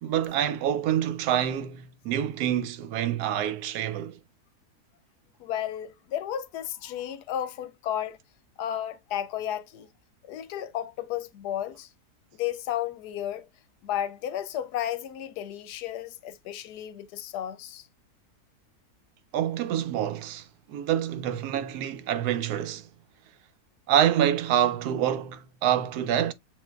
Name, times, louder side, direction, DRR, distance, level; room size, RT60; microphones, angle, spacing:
voice 1, 0.0-4.2 19.3-22.8 23.9-26.3, right 10 dB, 85° right, 1.1 m, -26 dB
voice 2, 5.4-8.2 8.6-9.9 10.3-11.9 12.3-13.5 13.8-17.9, left 11 dB, 90° left, 1.2 m, -33 dB
7.3 x 2.5 x 2.3 m
omnidirectional pair, 1.7 m